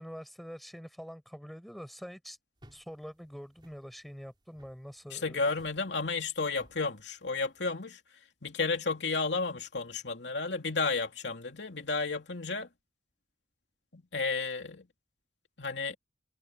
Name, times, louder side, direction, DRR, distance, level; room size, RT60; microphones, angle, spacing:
voice 1, 0.0-2.4 2.7-5.5, equal, ahead, 5.9 m, -45 dB
sound 1, 2.6-7.7, equal, 25° right, 4.7 m, -61 dB
voice 2, 5.1-8.0 8.4-12.7 13.9-14.9 15.6-16.0, left 4 dB, 80° left, 2.9 m, -32 dB
head